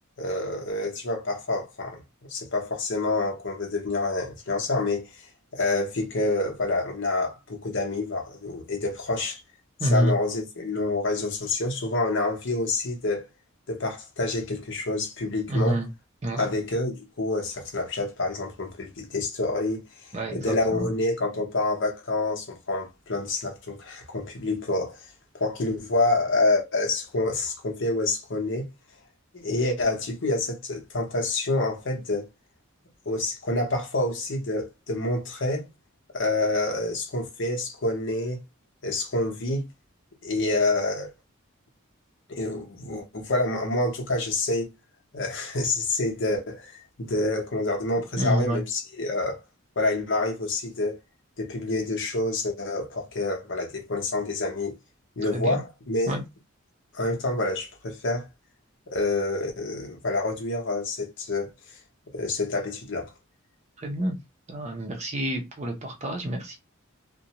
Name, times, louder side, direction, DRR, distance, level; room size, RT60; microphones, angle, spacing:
voice 1, 0.2-2.0 2.3-9.4 9.8-13.2 13.7-15.8 16.3-25.0 25.3-28.7 29.3-32.3 33.1-35.7 36.1-38.4 38.8-39.7 40.2-41.1 42.3-44.7 45.1-49.4 49.8-51.0 51.4-54.8 55.2-56.1 56.9-58.3 58.9-61.5 62.1-63.1, left 2 dB, 60° left, 0.8 m, -27 dB
voice 2, 9.8-10.1 15.5-15.9 16.2-16.5 20.1-20.9 48.2-48.6 55.3-55.5 56.1-56.2 63.8-64.2 64.5-66.6, right 1 dB, 30° right, 0.6 m, -27 dB
2.5 x 2.2 x 2.8 m
head